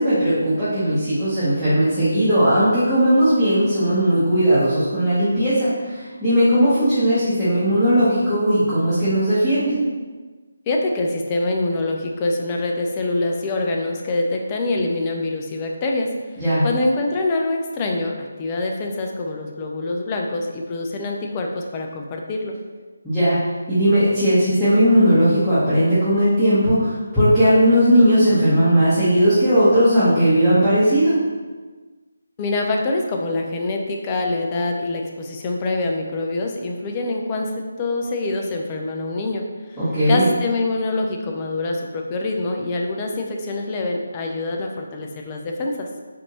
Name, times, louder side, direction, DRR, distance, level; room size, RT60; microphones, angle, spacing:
voice 1, 0.0-9.8 16.4-16.6 23.0-23.4 23.7-31.1 39.8-40.2, equal, ahead, -19 dB, 1.1 m, -17 dB
voice 2, 10.7-16.1 16.6-22.6 32.4-39.5 39.7-39.8 40.1-45.9, left 2 dB, 25° left, 1 dB, 0.4 m, -25 dB
4.2 x 2.7 x 3.0 m, 1.3 s
figure-of-eight pair, 155°, 0 cm